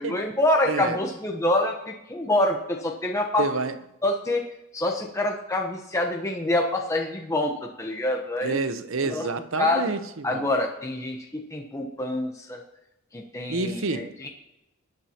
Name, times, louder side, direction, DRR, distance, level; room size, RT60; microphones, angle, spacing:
voice 1, 0.0-3.5 4.0-4.4 4.7-8.6 9.1-9.3 9.6-10.0 10.2-12.6 13.1-14.3, left 1 dB, 15° left, 0.9 m, -26 dB
voice 2, 0.7-1.0 3.4-3.8 8.4-10.5 13.5-14.1, right 3 dB, 60° right, 0.8 m, -28 dB
19.5 x 9.0 x 2.9 m
head